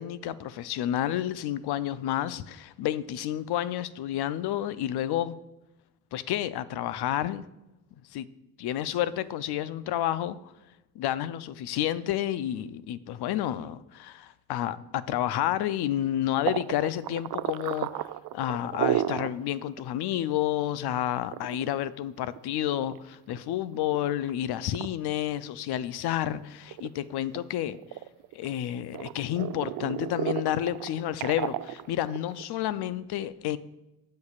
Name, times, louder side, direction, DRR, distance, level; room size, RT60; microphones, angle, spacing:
voice 1, 0.0-5.4 6.1-7.4 8.1-8.3 8.6-10.5 11.0-27.8 28.3-33.6, left 12 dB, 60° left, 0.6 m, -30 dB
sound 1, 16.4-19.4 19.8-19.9 20.2-20.3 21.1-23.4 23.9-24.3 24.7-24.9 25.4-26.4 26.7-28.5 28.9-32.4, right 13 dB, 50° right, 0.5 m, -33 dB
15.5 x 6.6 x 2.4 m
hypercardioid pair, 60°, 45 cm